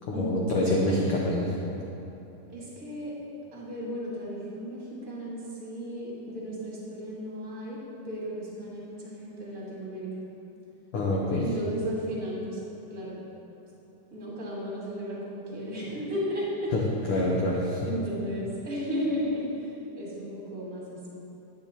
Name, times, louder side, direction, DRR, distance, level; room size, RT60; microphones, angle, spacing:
voice 1, 0.1-1.5 10.9-11.4 16.7-16.8 17.1-17.8, left 1 dB, 75° left, -4 dB, 1.2 m, -26 dB
voice 2, 2.5-3.1 3.5-10.1 11.4-12.6 12.9-13.2 14.1-16.7 17.1-17.2 17.8-21.1, equal, 35° right, -6 dB, 1.7 m, -34 dB
10.5 x 9.3 x 2.8 m, 3.0 s
omnidirectional pair, 3.6 m